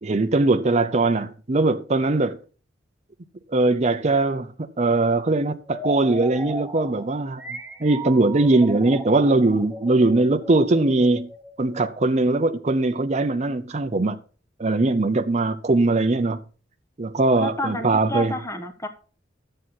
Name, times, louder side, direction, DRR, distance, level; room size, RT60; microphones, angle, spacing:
voice 1, 0.0-2.4 3.5-7.4 7.8-11.3 11.6-14.2 14.6-16.4 17.0-18.3, right 2 dB, 40° right, 0.7 m, -21 dB
sound 1, 5.6-12.3, right 1 dB, 10° right, 1.3 m, -37 dB
voice 2, 17.4-18.9, left 1 dB, 15° left, 1.1 m, -30 dB
11.0 x 7.7 x 4.2 m
head